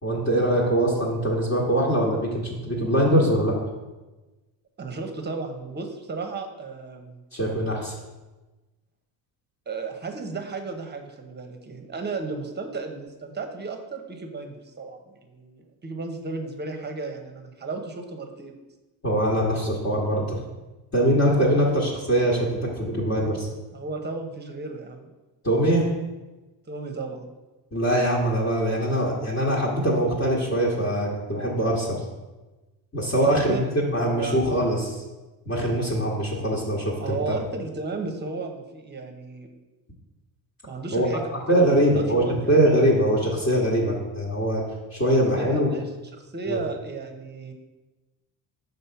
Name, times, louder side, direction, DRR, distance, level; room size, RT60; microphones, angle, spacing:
voice 1, 0.0-3.5 7.3-7.9 19.0-20.4 20.9-23.5 25.4-25.9 27.7-32.0 32.9-35.0 35.4-37.2 40.9-41.1 41.5-44.6 44.9-45.7 46.5-46.6, right 1 dB, 30° left, -5 dB, 1.6 m, -22 dB
voice 2, 4.8-7.2 9.7-18.6 21.5-21.7 23.7-25.1 26.7-27.3 33.2-33.7 34.1-34.4 37.0-39.5 40.7-42.8 45.4-47.5, right 3 dB, 20° right, 5 dB, 1.0 m, -34 dB
5.4 x 4.0 x 5.8 m, 1.1 s
supercardioid pair, 80°, 48 cm